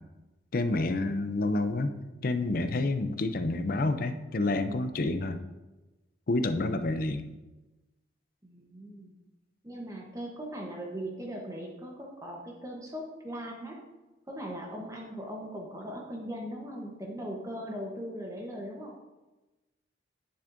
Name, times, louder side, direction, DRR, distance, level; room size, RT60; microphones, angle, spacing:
voice 1, 0.5-1.9 2.2-5.4 6.3-7.3, left 2 dB, 50° left, 10 dB, 0.5 m, -28 dB
voice 2, 6.5-6.8 8.4-9.1 9.6-13.8 14.3-18.9, equal, 15° right, -1 dB, 0.9 m, -39 dB
9.5 x 7.0 x 2.6 m, 1.1 s
head